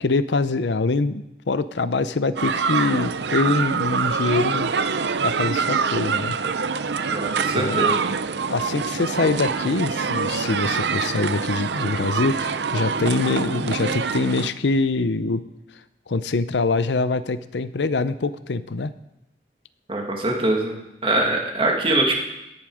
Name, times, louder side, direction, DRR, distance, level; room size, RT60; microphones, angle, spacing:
voice 1, 0.0-4.7 5.2-6.4 7.5-7.9 8.5-15.4 16.1-18.9, left 3 dB, 80° left, 13 dB, 0.6 m, -24 dB
sound 1, 2.4-14.5, right 5 dB, 75° right, 0.6 m, -25 dB
voice 2, 7.1-8.0 19.9-20.7 21.0-22.1, right 2 dB, 30° right, 0 dB, 2.5 m, -23 dB
17.0 x 10.5 x 5.0 m, 0.91 s
head